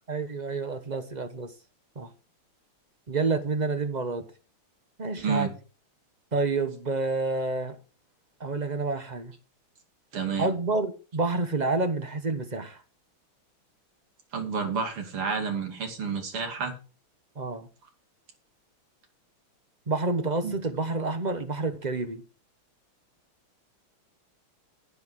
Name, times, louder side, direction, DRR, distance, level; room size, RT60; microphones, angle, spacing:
voice 1, 0.1-1.5 2.0-2.1 3.1-4.2 5.0-5.5 6.3-7.8 8.4-9.3 10.4-12.8 17.4-17.7 19.9-22.2, right 3 dB, 40° right, 0.6 m, -28 dB
voice 2, 10.1-10.5 14.3-16.7 20.4-20.5, right 5 dB, 80° right, 3.5 m, -30 dB
11.0 x 10.5 x 4.7 m
omnidirectional pair, 2.4 m